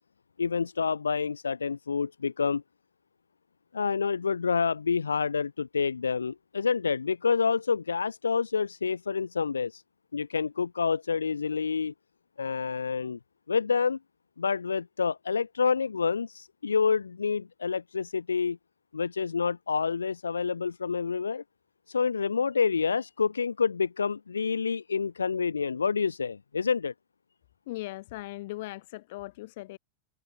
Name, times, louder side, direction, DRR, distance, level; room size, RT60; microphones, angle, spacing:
voice 1, 0.4-2.6 3.7-9.8 10.1-11.9 12.4-13.2 13.5-14.0 14.4-18.6 18.9-21.4 21.9-26.9, left 5 dB, 75° left, 0.5 m, -28 dB
voice 2, 27.7-29.8, left 18 dB, 50° left, 0.9 m, -39 dB
figure-of-eight pair, 90°, 0 cm